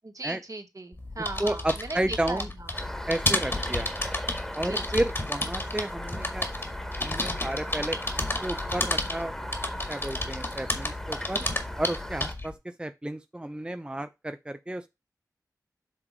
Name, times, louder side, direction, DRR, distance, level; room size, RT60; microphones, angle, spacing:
voice 1, 0.0-2.7 3.7-3.8 4.6-4.9, right 2 dB, 50° right, 1.5 m, -38 dB
sound 1, 0.9-12.5, left 1 dB, 35° left, 1.8 m, -32 dB
voice 2, 1.4-2.5 3.1-3.9 4.6-6.5 7.0-9.3 9.9-11.4 11.8-12.5 12.8-14.9, right 1 dB, 15° right, 0.6 m, -32 dB
sound 2, 2.7-12.3, equal, 5° left, 1.6 m, -39 dB
7.3 x 3.5 x 4.9 m
cardioid pair, 40°, 7 cm